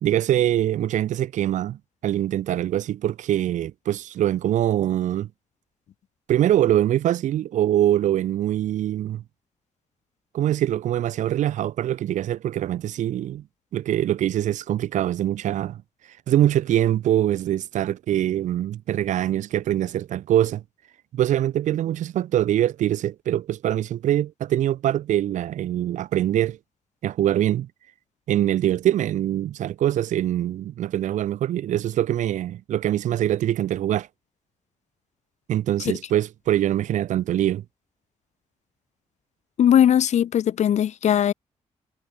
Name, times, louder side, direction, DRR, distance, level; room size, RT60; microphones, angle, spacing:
voice 1, 0.0-5.3 6.3-9.2 10.3-13.4 13.7-15.8 16.3-20.6 21.1-26.6 27.0-27.7 28.3-34.1 35.5-37.6, right 12 dB, 85° right, 2.2 m, -23 dB
voice 2, 39.6-41.3, left 10 dB, 70° left, 1.1 m, -19 dB
cardioid pair, 85°, 12 cm